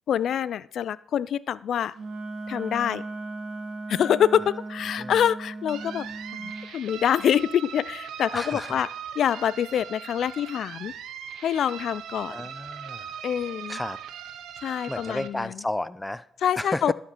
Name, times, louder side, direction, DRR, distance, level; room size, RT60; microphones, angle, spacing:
voice 1, 0.1-1.9 2.5-3.0 3.9-6.1 6.3-8.9 9.2-10.9 11.4-12.4 13.2-13.8 14.6-15.6 16.4-16.9, left 9 dB, 65° left, 19 dB, 0.4 m, -25 dB
Wind instrument woodwind instrument, 1.9-6.7, right 2 dB, 55° right, 1.4 m, -37 dB
sound 1, 5.7-15.3, right 8 dB, 80° right, 0.8 m, -40 dB
voice 2, 8.3-8.8 12.3-13.1 13.7-14.0 14.9-16.3 16.6-16.9, left 1 dB, 10° left, 16 dB, 0.5 m, -32 dB
12.0 x 5.2 x 5.6 m, 0.66 s
cardioid pair, 90°, 0 cm